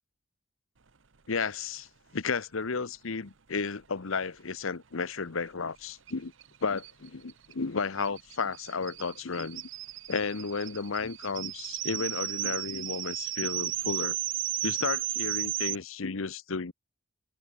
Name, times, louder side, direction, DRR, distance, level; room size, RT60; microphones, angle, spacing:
voice 1, 1.3-1.9 2.1-6.3 6.6-9.7 10.1-14.2 14.6-16.7, left 4 dB, 80° left, 0.9 m, -33 dB
sound 1, 6.1-6.2 6.4-6.5 6.8-15.8, right 13 dB, 70° right, 1.1 m, -34 dB
open air
head